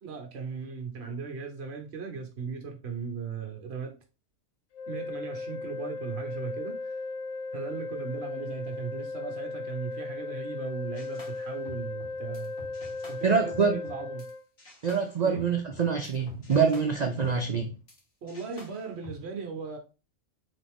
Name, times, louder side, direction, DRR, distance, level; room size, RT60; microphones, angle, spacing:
voice 1, 0.0-3.9 4.9-6.9 7.5-12.5 13.1-14.2 15.2-15.4 18.2-19.8, right 5 dB, 55° right, 1.2 m, -37 dB
sound 1, 4.7-14.4, left 3 dB, 80° left, 1.0 m, -37 dB
sound 2, 10.9-14.3 14.6-18.0 18.3-19.2, left 1 dB, 45° left, 1.3 m, -49 dB
voice 2, 13.2-13.8 14.8-17.7, right 5 dB, 85° right, 0.3 m, -25 dB
4.0 x 3.4 x 3.5 m
omnidirectional pair, 1.4 m